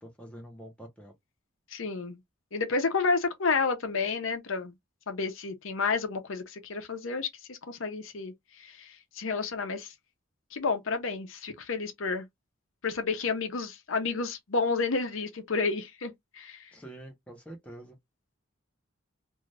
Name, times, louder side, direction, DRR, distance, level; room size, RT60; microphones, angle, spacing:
voice 1, 0.0-1.1 16.7-18.0, right 1 dB, 5° left, 0.8 m, -46 dB
voice 2, 1.7-2.2 2.5-4.7 5.1-9.9 10.5-12.3 12.8-16.6, left 4 dB, 75° left, 0.7 m, -30 dB
2.7 x 2.4 x 3.2 m
head